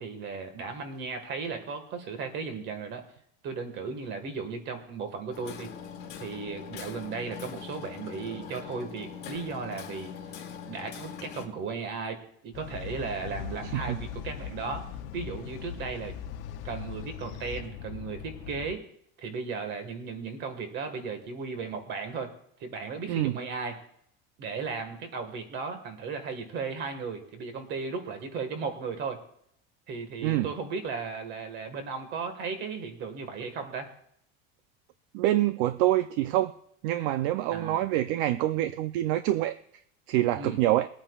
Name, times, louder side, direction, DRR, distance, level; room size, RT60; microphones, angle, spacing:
voice 1, 0.0-3.0 3.4-5.7 6.2-10.1 10.7-14.9 15.1-16.1 16.6-18.8 19.2-22.3 22.6-23.8 24.4-29.2 29.9-33.9 37.5-37.8 40.3-40.6, right 5 dB, 35° right, 7 dB, 1.6 m, -36 dB
Hammer, 5.3-11.5, left 7 dB, 35° left, 1.6 m, -42 dB
sound 1, 12.5-18.7, left 8 dB, 65° left, 0.8 m, -40 dB
voice 2, 35.1-36.5 36.8-39.5 40.1-40.9, right 14 dB, 60° right, 12 dB, 0.5 m, -26 dB
22.0 x 8.8 x 2.4 m, 0.69 s
cardioid pair, 175°, 30 cm